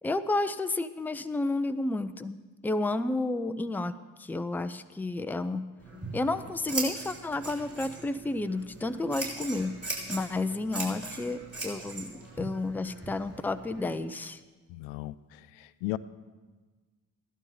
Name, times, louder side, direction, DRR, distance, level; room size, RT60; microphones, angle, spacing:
voice 1, 0.0-2.4 2.6-5.7 6.1-9.8 10.1-14.4, left 2 dB, 5° left, 11 dB, 0.5 m, -31 dB
Scissors, 5.8-13.9, right 2 dB, 30° right, 5.0 m, -40 dB
voice 2, 14.7-16.0, left 18 dB, 75° left, 16 dB, 0.6 m, -36 dB
15.5 x 11.5 x 3.9 m, 1.3 s
hypercardioid pair, 40°, 48 cm